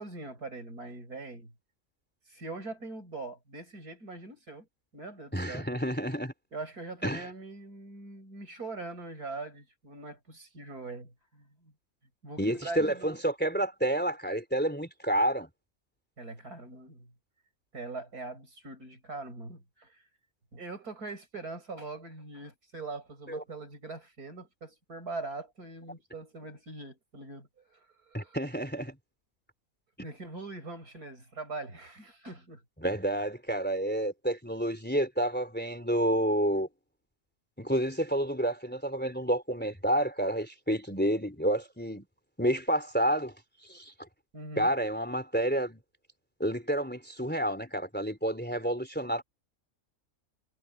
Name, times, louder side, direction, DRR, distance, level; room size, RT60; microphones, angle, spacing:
voice 1, 0.0-1.5 2.3-4.7 4.9-5.7 6.5-11.7 12.2-13.2 16.2-17.1 17.7-20.0 20.5-28.4 30.0-32.6 44.3-44.7, right 3 dB, 85° right, 7.1 m, -42 dB
voice 2, 5.3-6.3 7.0-7.2 12.4-15.5 23.3-23.4 28.1-28.9 32.8-36.7 37.6-42.1 42.4-43.3 43.7-43.9 44.6-45.8 46.4-49.2, right 1 dB, 5° left, 3.3 m, -29 dB
omnidirectional pair, 1.6 m